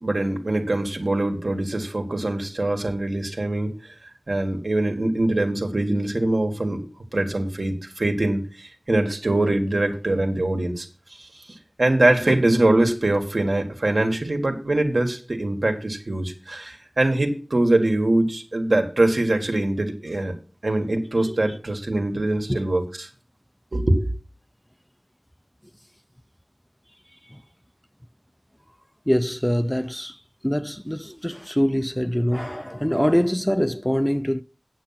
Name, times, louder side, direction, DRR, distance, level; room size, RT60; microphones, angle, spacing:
voice 1, 0.0-3.7 4.3-6.9 7.1-10.9 11.8-20.3 20.6-23.1 23.7-24.0, right 2 dB, 70° right, 1.7 m, -23 dB
voice 2, 21.2-21.6 22.5-22.6 27.3-27.4 29.1-34.4, equal, 10° left, 0.4 m, -24 dB
8.8 x 7.2 x 5.8 m
wide cardioid pair, 50°, 0 cm